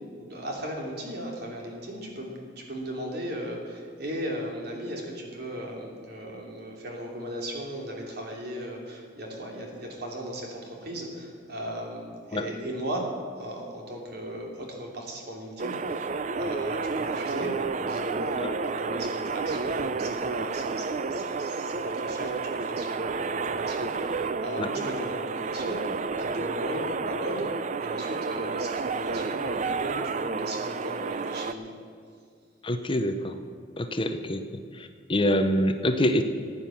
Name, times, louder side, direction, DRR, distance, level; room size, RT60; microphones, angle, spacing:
voice 1, 0.2-31.7, equal, 55° right, 0 dB, 3.0 m, -37 dB
sound 1, 15.6-31.5, right 4 dB, 40° right, 0.5 m, -30 dB
voice 2, 32.6-33.4 33.8-34.4 34.7-36.2, left 1 dB, 25° left, 8 dB, 0.7 m, -25 dB
15.0 x 9.3 x 7.1 m, 2.2 s
head